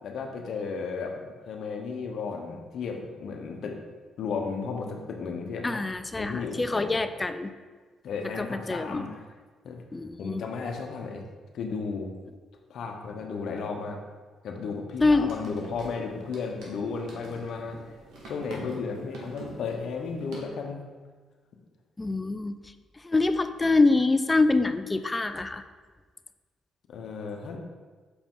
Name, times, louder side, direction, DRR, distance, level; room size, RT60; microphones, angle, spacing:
voice 1, 0.0-3.8 4.2-5.8 6.2-7.0 8.0-9.1 9.6-9.8 10.2-11.2 11.5-12.1 12.7-14.0 14.4-17.8 18.2-20.8 26.9-27.6, left 5 dB, 70° left, 2 dB, 0.9 m, -34 dB
voice 2, 5.6-7.5 8.4-9.1 9.9-10.4 15.0-15.3 22.0-22.6 23.0-25.6, left 3 dB, 20° left, 10 dB, 0.4 m, -25 dB
sound 1, 14.9-20.4, right 1 dB, 80° right, 1.6 m, -45 dB
6.6 x 4.7 x 3.8 m, 1.4 s
cardioid pair, 90°, 0 cm